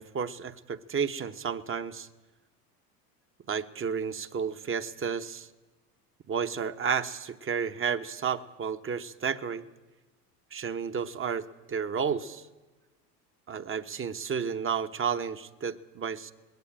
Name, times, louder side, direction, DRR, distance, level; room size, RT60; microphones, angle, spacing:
voice 1, 0.0-2.1 3.5-5.5 6.3-9.6 10.5-12.4 13.5-16.3, right 6 dB, 25° right, 10 dB, 1.1 m, -32 dB
20.0 x 16.5 x 8.8 m, 1.2 s
hypercardioid pair, 85°, 47 cm